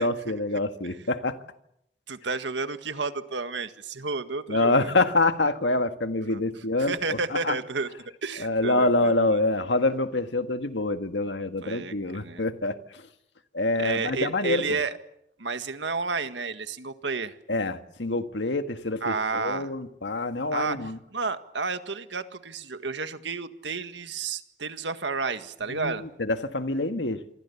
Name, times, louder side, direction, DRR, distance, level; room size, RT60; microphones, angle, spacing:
voice 1, 0.0-1.4 4.5-7.6 8.4-12.8 13.5-14.6 17.5-21.0 25.7-27.2, left 2 dB, 80° left, 1.7 m, -26 dB
voice 2, 2.1-4.9 6.3-6.4 6.8-7.9 8.2-9.1 11.6-12.4 13.8-15.0 15.4-17.3 19.0-19.7 20.5-26.0, right 4 dB, 80° right, 1.8 m, -31 dB
27.0 x 25.0 x 7.1 m
head